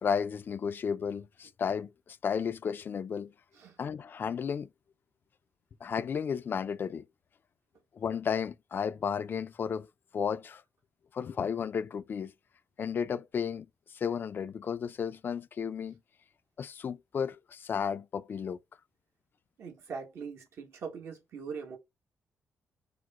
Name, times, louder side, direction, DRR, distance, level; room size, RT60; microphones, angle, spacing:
voice 1, 0.0-3.3 3.8-4.7 5.8-7.1 7.9-10.6 11.1-12.3 12.8-16.0 16.6-18.6, left 7 dB, 45° left, 0.4 m, -33 dB
voice 2, 19.6-21.8, right 5 dB, 70° right, 1.2 m, -41 dB
4.9 x 2.1 x 3.5 m
cardioid pair, 105°, 5 cm